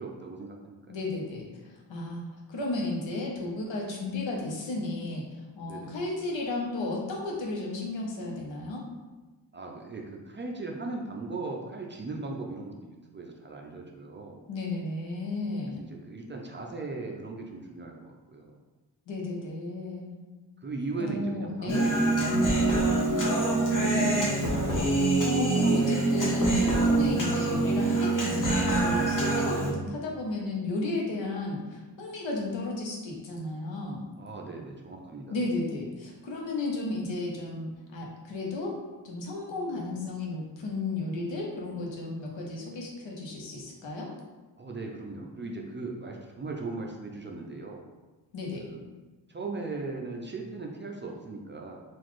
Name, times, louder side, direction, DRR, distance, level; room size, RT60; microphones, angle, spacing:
voice 1, 0.0-0.8 5.6-6.0 9.5-14.4 15.8-18.6 20.6-22.3 34.2-35.4 44.6-47.8 48.6-48.8 49.3-51.8, right 3 dB, 30° right, 0 dB, 0.4 m, -38 dB
voice 2, 0.9-2.2 2.5-5.2 5.6-8.8 14.5-15.8 19.1-20.2 21.0-21.9 23.8-24.8 25.2-34.0 35.3-44.1 48.3-48.7, left 2 dB, 90° left, -2 dB, 0.9 m, -33 dB
Human voice, 21.7-29.7, right 2 dB, 45° left, 1.0 m, -25 dB
3.9 x 2.5 x 3.1 m, 1.2 s
wide cardioid pair, 100°, 44 cm